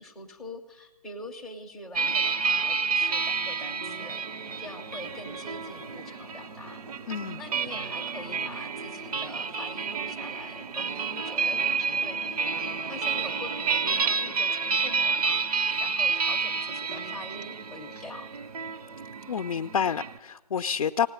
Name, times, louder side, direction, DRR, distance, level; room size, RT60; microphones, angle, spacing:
voice 1, 0.0-6.8 7.4-18.3, left 2 dB, ahead, -2 dB, 0.5 m, -44 dB
sound 1, 2.0-20.2, right 5 dB, 65° right, 0.6 m, -30 dB
sound 2, 4.2-18.1, right 1 dB, 85° right, 1.3 m, -49 dB
voice 2, 7.1-7.4 19.3-21.1, left 7 dB, 60° left, 7 dB, 0.5 m, -28 dB
17.0 x 9.0 x 9.4 m, 1.0 s
figure-of-eight pair, 155°, 20 cm